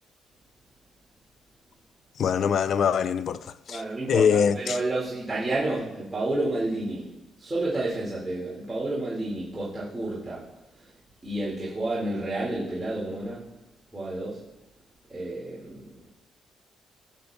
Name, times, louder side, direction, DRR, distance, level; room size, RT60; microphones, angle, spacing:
voice 1, 2.2-3.8 4.1-4.8, left 7 dB, 60° left, 0.4 m, -23 dB
voice 2, 3.7-7.0 7.4-10.4 11.2-13.4 13.9-14.4 15.1-15.9, right 2 dB, 15° right, 2.1 m, -30 dB
18.5 x 6.7 x 2.3 m
cardioid pair, 135°, 0 cm